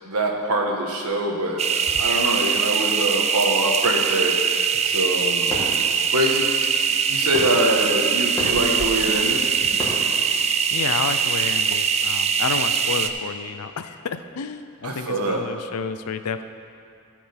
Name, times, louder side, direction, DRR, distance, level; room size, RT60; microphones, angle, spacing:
voice 1, 0.0-4.3 4.8-5.7 6.1-6.7 7.1-9.5 14.8-15.4, right 1 dB, 85° right, 1 dB, 1.4 m, -24 dB
sound 1, 1.6-13.1, right 6 dB, 30° right, 0.4 m, -22 dB
Fireworks, 5.1-11.2, left 1 dB, 20° left, 2.1 m, -35 dB
voice 2, 10.7-16.4, left 5 dB, 85° left, 10 dB, 0.5 m, -30 dB
14.5 x 5.1 x 5.2 m, 2.5 s
head